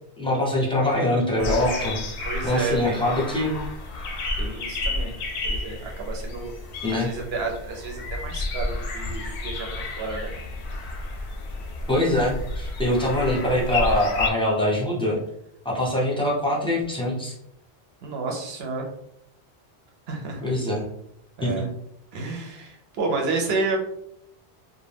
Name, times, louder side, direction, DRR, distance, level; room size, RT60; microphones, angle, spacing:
voice 1, 0.2-2.0 2.4-3.6 6.8-7.1 11.9-15.2 15.6-17.3 20.4-20.8 21.4-21.7, left 1 dB, 5° left, -5 dB, 0.6 m, -23 dB
sound 1, 1.4-14.3, left 2 dB, 80° left, 0.9 m, -31 dB
voice 2, 2.2-3.0 4.4-5.1 5.4-6.5 6.9-10.3 12.9-13.0 13.4-13.5 18.0-18.9 20.1-20.4 21.4-21.7 22.1-23.8, right 3 dB, 70° right, 1 dB, 0.9 m, -30 dB
2.4 x 2.1 x 3.3 m, 0.74 s
omnidirectional pair, 1.1 m